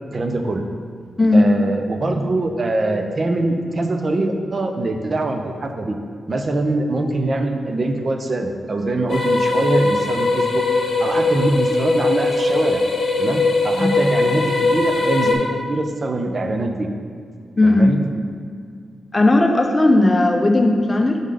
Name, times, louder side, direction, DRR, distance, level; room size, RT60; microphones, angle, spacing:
voice 1, 0.1-0.7 1.3-6.0 6.3-10.6 11.0-12.8 13.2-16.9 17.6-18.0, right 2 dB, 45° right, 5 dB, 0.6 m, -23 dB
voice 2, 1.2-1.5 13.7-13.9 17.6-17.9 19.1-21.2, left 2 dB, 25° left, 3 dB, 0.6 m, -15 dB
sound 1, 9.1-15.3, left 3 dB, 65° left, 0.9 m, -20 dB
5.4 x 3.7 x 4.9 m, 2.1 s
cardioid pair, 85°, 0 cm